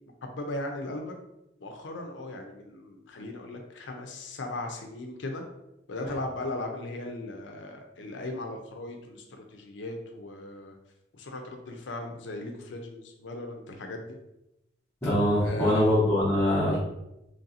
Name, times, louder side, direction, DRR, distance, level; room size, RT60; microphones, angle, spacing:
voice 1, 0.2-1.1 1.6-5.4 5.9-10.7 11.1-14.2 15.4-15.9, left 2 dB, 80° left, 3 dB, 0.5 m, -37 dB
voice 2, 15.0-16.8, left 1 dB, 15° left, -13 dB, 1.0 m, -23 dB
3.1 x 2.6 x 4.1 m, 0.90 s
head